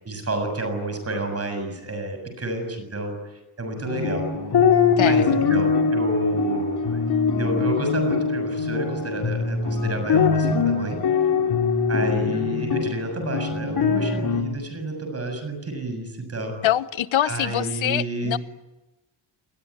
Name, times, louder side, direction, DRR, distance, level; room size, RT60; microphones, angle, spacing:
voice 1, 0.1-3.2 3.6-4.2 5.0-7.0 7.4-11.0 11.9-16.6 17.3-18.4, right 2 dB, 30° right, 6 dB, 6.9 m, -30 dB
sound 1, 3.9-14.4, left 5 dB, 55° left, 3.5 m, -22 dB
voice 2, 5.0-5.6 16.6-18.4, left 12 dB, 75° left, 15 dB, 1.1 m, -25 dB
28.0 x 20.5 x 9.9 m, 1.0 s
wide cardioid pair, 180°, 47 cm